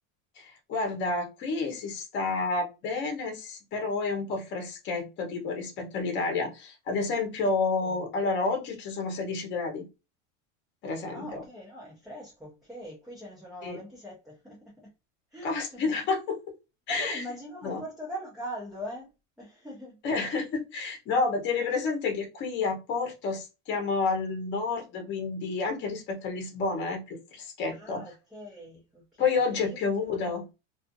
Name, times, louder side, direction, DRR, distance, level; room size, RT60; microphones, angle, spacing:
voice 1, 0.4-9.8 10.8-11.4 13.6-13.8 15.4-16.5 16.9-17.2 17.6-17.8 20.0-28.0 29.2-30.4, left 4 dB, 30° left, 0.8 m, -30 dB
voice 2, 11.1-14.9 15.3-15.8 17.0-19.1 19.4-20.0 27.7-30.2, equal, ahead, 0.4 m, -42 dB
2.5 x 2.4 x 2.5 m
supercardioid pair, 155°, 38 cm